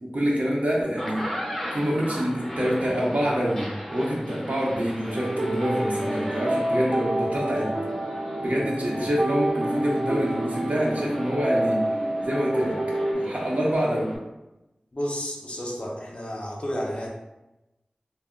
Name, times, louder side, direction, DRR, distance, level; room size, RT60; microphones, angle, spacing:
voice 1, 0.0-1.3 1.7-7.7 8.4-11.8 12.2-12.7 13.1-14.1, equal, 65° right, -4 dB, 0.8 m, -26 dB
sound 1, 0.8-14.2, equal, 5° left, 0.6 m, -37 dB
sound 2, 5.1-13.1, right 1 dB, 40° right, 0.3 m, -28 dB
voice 2, 14.9-17.1, equal, 45° left, -2 dB, 0.6 m, -31 dB
2.2 x 2.0 x 3.6 m, 0.99 s
wide cardioid pair, 50°, 3 cm